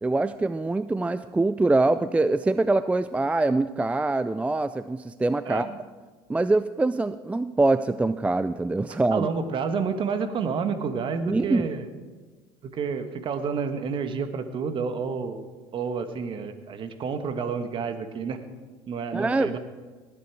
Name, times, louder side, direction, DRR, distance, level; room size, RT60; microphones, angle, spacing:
voice 1, 0.0-5.7 6.3-9.3 11.3-11.6 19.1-19.5, right 2 dB, 10° right, 13 dB, 0.3 m, -24 dB
voice 2, 5.4-5.8 8.9-11.9 12.6-18.4 18.9-19.6, right 5 dB, 45° right, 9 dB, 1.4 m, -30 dB
19.5 x 8.4 x 4.7 m, 1.4 s
hypercardioid pair, 85°, 12 cm